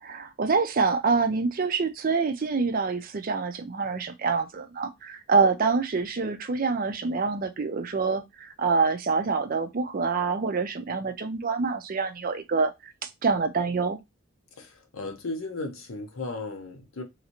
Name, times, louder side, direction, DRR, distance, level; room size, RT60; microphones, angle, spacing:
voice 1, 0.0-12.9 13.2-14.0, right 4 dB, 40° right, 0.4 m, -26 dB
voice 2, 14.6-17.0, left 2 dB, 75° left, 0.7 m, -35 dB
3.2 x 2.6 x 2.9 m
head